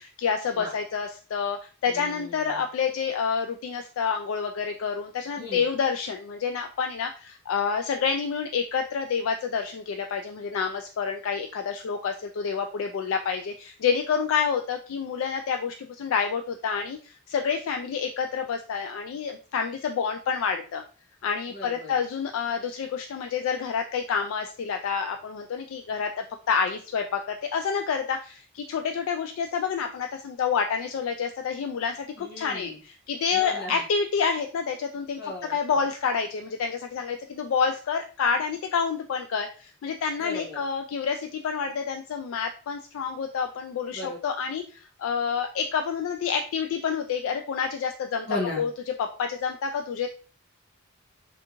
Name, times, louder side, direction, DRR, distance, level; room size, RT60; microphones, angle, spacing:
voice 1, 0.0-20.8 21.2-35.2 35.5-48.3 48.6-48.7 49.0-50.1, left 6 dB, 70° left, 5 dB, 0.3 m, -28 dB
voice 2, 1.9-2.6 5.4-5.7 21.5-21.9 32.2-32.8 33.3-33.8 35.2-35.8 40.2-40.6 43.9-44.2 48.3-48.6, left 2 dB, 45° left, -1 dB, 1.1 m, -36 dB
3.4 x 2.4 x 2.9 m, 0.38 s
head